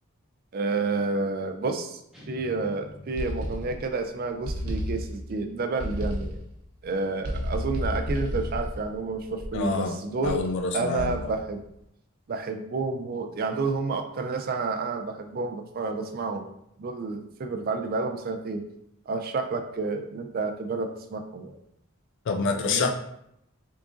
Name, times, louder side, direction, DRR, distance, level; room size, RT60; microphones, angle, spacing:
voice 1, 0.5-2.0 2.3-6.4 6.8-10.4 10.7-11.6 12.3-16.5 16.8-18.6 19.1-21.6 22.6-22.9, right 3 dB, 40° right, 6 dB, 0.4 m, -30 dB
sound 1, 2.1-4.2, equal, 5° right, 0.6 m, -46 dB
sound 2, 3.2-4.0 4.5-5.4 5.8-6.6 7.2-9.8 10.2-10.6 11.0-11.5, equal, 80° right, 0.8 m, -32 dB
voice 2, 9.5-11.3 22.3-22.9, left 4 dB, 55° left, 5 dB, 0.3 m, -28 dB
3.7 x 3.6 x 2.5 m, 0.78 s
head